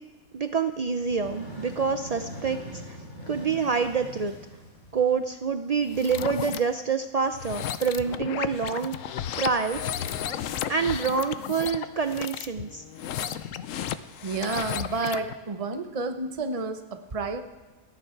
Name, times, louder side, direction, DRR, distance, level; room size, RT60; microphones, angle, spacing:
voice 1, 0.3-3.0 3.3-4.3 4.9-9.0 9.4-10.2 10.7-12.8, right 5 dB, 65° right, 8 dB, 0.4 m, -27 dB
sound 1, 0.9-5.4, equal, 50° left, 4.3 m, -42 dB
sound 2, 5.9-6.6 7.3-15.3, left 9 dB, 70° left, 1.0 m, -34 dB
voice 2, 14.2-17.4, right 3 dB, 30° right, 7 dB, 0.9 m, -30 dB
30.0 x 10.0 x 4.6 m, 1.2 s
omnidirectional pair, 1.5 m